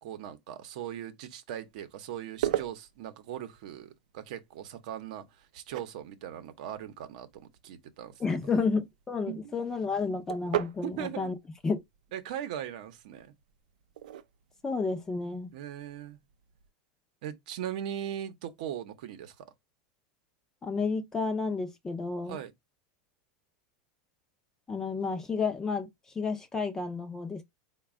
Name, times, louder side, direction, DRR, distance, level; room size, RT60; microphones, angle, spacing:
voice 1, 0.0-8.2 9.3-9.5 10.8-11.3 12.1-13.3 15.5-16.2 17.2-19.5 22.3-22.5, right 10 dB, 60° right, 0.8 m, -39 dB
sound 1, 1.5-16.7, right 12 dB, 90° right, 0.5 m, -41 dB
voice 2, 8.2-11.3 11.6-11.8 14.6-15.5 20.6-22.4 24.7-25.9 26.2-27.4, left 4 dB, 10° left, 0.5 m, -31 dB
4.1 x 2.2 x 3.5 m
supercardioid pair, 165°, 4 cm